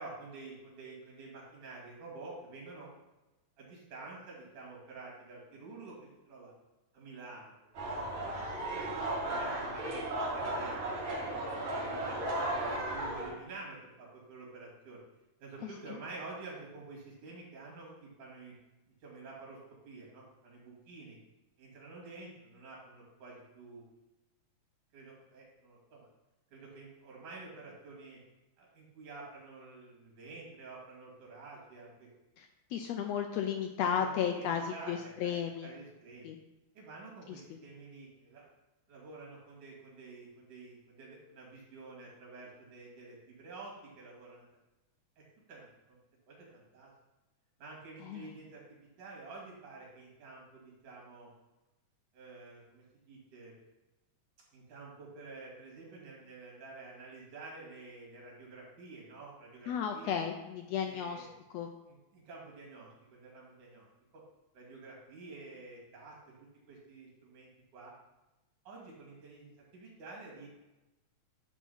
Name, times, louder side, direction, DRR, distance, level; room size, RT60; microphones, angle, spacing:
voice 1, 0.0-2.9 3.6-6.5 6.9-8.0 8.7-11.0 11.3-15.0 15.4-18.5 19.0-19.6 19.8-21.2 21.6-23.9 24.9-26.1 26.5-28.2 28.6-32.1 33.9-36.3 36.8-38.5 38.9-44.4 45.2-46.0 46.3-46.9 47.6-51.3 52.1-53.6 54.5-60.2 60.8-61.3 61.8-63.9 64.1-64.2 64.5-67.9 68.7-70.5, right 3 dB, 85° right, -4 dB, 3.8 m, -49 dB
sound 1, 7.7-13.3, right 1 dB, 65° right, 3.1 m, -35 dB
voice 2, 32.4-35.7 36.2-36.4 37.3-37.4 48.1-48.2 59.7-61.3 61.5-61.7, left 8 dB, 80° left, 5 dB, 1.5 m, -34 dB
10.5 x 3.5 x 5.6 m, 1.0 s
omnidirectional pair, 3.4 m